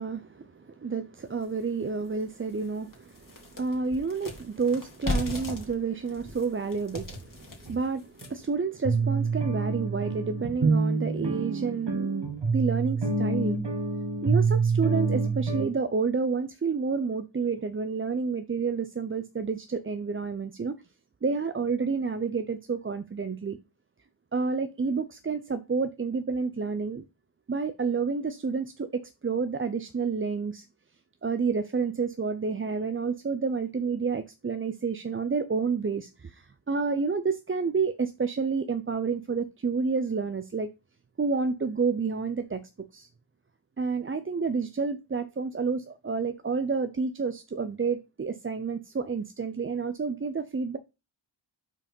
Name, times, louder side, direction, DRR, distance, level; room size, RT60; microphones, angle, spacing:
voice 1, 0.0-12.1 12.5-13.6 14.2-20.8 21.2-23.6 24.3-27.0 27.5-30.7 31.2-40.7 41.2-42.6 42.9-43.1 43.8-50.8, right 5 dB, 30° right, 0.5 m, -29 dB
sound 1, 1.4-1.5 2.0-2.1 2.5-8.5, left 2 dB, 40° left, 2.2 m, -37 dB
sound 2, 7.1-7.2 7.7-7.8 8.2-8.3 8.8-15.6, right 4 dB, 60° right, 2.2 m, -26 dB
5.9 x 4.7 x 5.2 m
wide cardioid pair, 95°, 47 cm